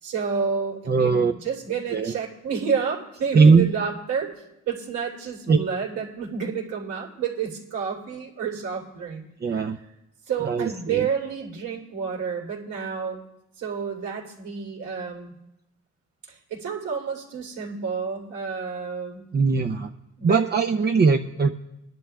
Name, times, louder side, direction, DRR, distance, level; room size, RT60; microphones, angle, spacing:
voice 1, 0.0-4.3 4.7-9.7 10.3-13.2 13.6-15.3 16.3-19.2 20.2-20.4, right 6 dB, 75° right, -3 dB, 3.1 m, -30 dB
voice 2, 0.9-1.3 1.9-2.1 3.3-3.7 5.5-5.6 9.4-9.8 10.4-11.1 19.3-19.9 20.2-21.5, right 4 dB, 35° right, 6 dB, 0.6 m, -19 dB
22.0 x 10.5 x 2.3 m, 0.89 s
cardioid pair, 90°, 30 cm